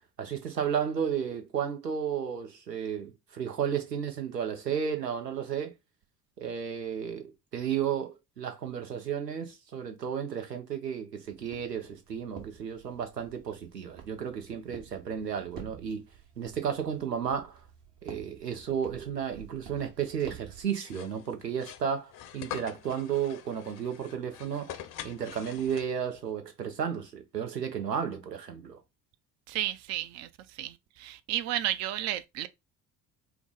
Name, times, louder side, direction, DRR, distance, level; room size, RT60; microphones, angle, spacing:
voice 1, 0.2-5.7 6.4-16.0 16.4-17.6 18.0-24.7 25.0-28.8, right 8 dB, 85° right, 0.8 m, -33 dB
Walk footsteps, 11.3-20.6, right 7 dB, 60° right, 1.4 m, -50 dB
sound 1, 20.8-26.2, left 11 dB, 45° left, 0.6 m, -44 dB
voice 2, 29.5-30.3 30.6-32.5, right 13 dB, 35° right, 0.4 m, -32 dB
4.5 x 2.0 x 3.8 m
figure-of-eight pair, 55°, 47 cm